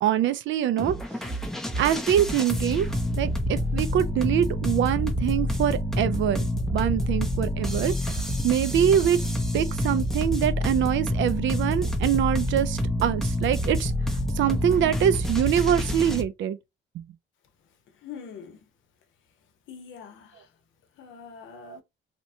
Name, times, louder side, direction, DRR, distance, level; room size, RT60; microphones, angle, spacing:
voice 1, 0.0-0.9 1.2-1.3 1.8-2.9 3.2-9.2 9.5-13.9 14.4-16.6 16.9-17.0 21.5-21.8, right 10 dB, 70° right, 0.4 m, -24 dB
sound 1, 0.8-16.2, left 1 dB, ahead, 0.5 m, -27 dB
voice 2, 18.0-18.6 19.7-20.5 21.0-21.8, left 7 dB, 75° left, 0.7 m, -43 dB
2.9 x 2.1 x 2.7 m
cardioid pair, 90°, 20 cm